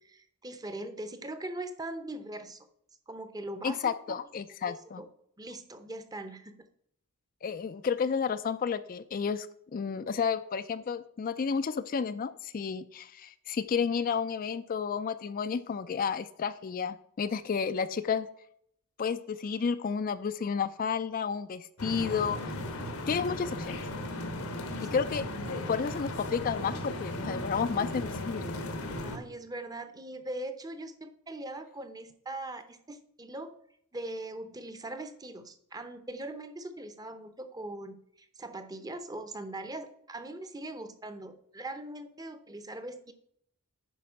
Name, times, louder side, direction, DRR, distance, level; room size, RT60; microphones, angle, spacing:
voice 1, 0.0-2.7 3.1-3.9 4.5-5.1 5.4-6.7 29.0-33.5 33.9-43.1, right 1 dB, 20° right, 10 dB, 0.7 m, -41 dB
voice 2, 3.6-5.0 7.4-9.5 9.7-18.3 19.0-22.6 23.1-23.8 24.8-25.3 25.7-28.4, left 6 dB, 40° left, 12 dB, 0.3 m, -31 dB
Oiseau-Rumeur+canard(st), 21.8-29.2, left 1 dB, 85° left, 1.4 m, -36 dB
9.4 x 5.0 x 5.7 m, 0.69 s
head